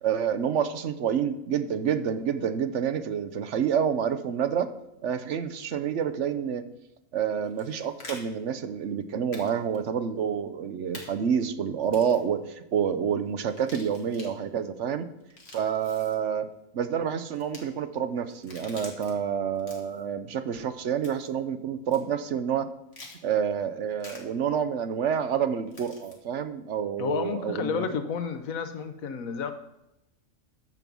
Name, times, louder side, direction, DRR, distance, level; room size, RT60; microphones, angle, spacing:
voice 1, 0.0-4.7 5.0-6.6 7.1-15.1 15.5-16.5 16.7-22.7 23.2-27.9, right 8 dB, 65° right, 10 dB, 1.0 m, -28 dB
sound 1, 7.4-8.2 9.3-9.5 9.7-9.8 10.9-11.1 11.8-12.3 13.5-14.3 15.2-16.2 17.3-17.6 18.3-19.1 19.6-20.0 21.0-21.4 21.9-22.0 22.9-23.2 24.0-24.2 25.7-26.1, left 2 dB, 50° left, 2.2 m, -46 dB
voice 2, 27.0-29.5, left 6 dB, 85° left, 8 dB, 1.3 m, -31 dB
14.0 x 5.3 x 6.1 m, 0.89 s
omnidirectional pair, 1.4 m